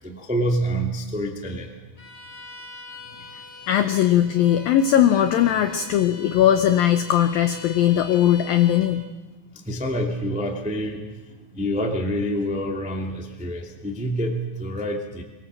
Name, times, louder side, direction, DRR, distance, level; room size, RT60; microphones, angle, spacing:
voice 1, 0.0-1.7 9.5-15.2, equal, 5° right, 1 dB, 0.5 m, -27 dB
Bowed string instrument, 2.0-9.0, equal, 40° left, 4.5 m, -41 dB
voice 2, 3.7-9.1, left 11 dB, 90° left, 9 dB, 2.0 m, -19 dB
23.0 x 22.0 x 7.6 m, 1.2 s
omnidirectional pair, 5.3 m